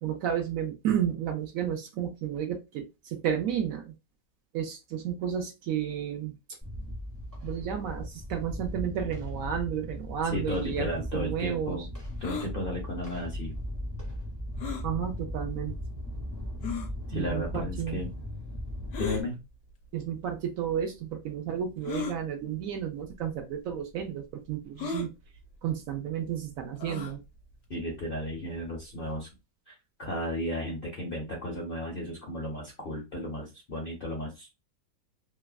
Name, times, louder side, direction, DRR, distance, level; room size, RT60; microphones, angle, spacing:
voice 1, 0.0-3.9 4.5-6.3 7.4-11.9 14.8-15.7 17.1-18.0 19.9-25.1 25.6-27.2, right 9 dB, 70° right, 4 dB, 0.8 m, -32 dB
sound 1, 6.6-19.2, left 1 dB, 15° right, 0.9 m, -37 dB
voice 2, 10.3-11.9 12.2-13.6 17.1-18.1 19.0-19.4 27.7-29.3 29.7-34.5, left 1 dB, 55° left, -1 dB, 0.6 m, -34 dB
sound 2, 12.2-12.5 14.6-14.9 15.7-15.8 16.6-16.9 18.9-19.2 20.3-20.4 21.8-22.2 23.1-23.2 23.5-23.6 24.8-25.1 26.8-27.2, left 5 dB, 70° left, 1.1 m, -35 dB
3.2 x 2.3 x 2.3 m, 0.24 s
omnidirectional pair, 1.9 m